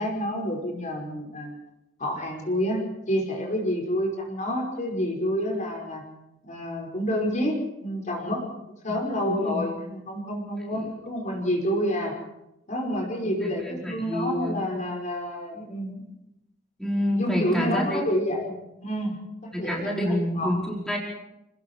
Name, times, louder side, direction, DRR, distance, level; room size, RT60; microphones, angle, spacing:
voice 1, 0.0-1.6 2.0-6.0 6.4-8.4 8.8-12.1 12.7-16.1 17.1-18.4 18.8-19.2 19.4-20.5, equal, 40° left, 0 dB, 5.5 m, -28 dB
voice 2, 9.2-9.6 10.7-10.9 13.4-14.6 16.8-18.0 19.5-21.0, left 1 dB, 5° left, -4 dB, 4.8 m, -28 dB
29.0 x 20.0 x 4.7 m, 0.88 s
head